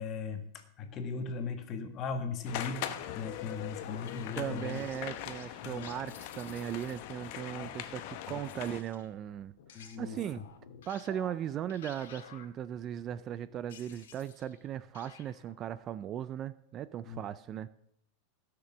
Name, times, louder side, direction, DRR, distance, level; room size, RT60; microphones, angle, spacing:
voice 1, 0.0-4.8 5.6-5.9 7.5-7.7 8.3-8.7 9.7-10.4 17.1-17.2, left 5 dB, 30° left, 7 dB, 1.4 m, -39 dB
sound 1, 2.4-8.8, left 12 dB, 50° left, 1.0 m, -41 dB
sound 2, 3.0-7.4 8.4-14.7 14.9-15.5, left 8 dB, 90° left, 1.7 m, -54 dB
voice 2, 4.4-10.4 10.9-17.7, right 10 dB, 30° right, 16 dB, 0.3 m, -38 dB
16.0 x 6.6 x 6.1 m, 0.74 s
supercardioid pair, 155°, 0 cm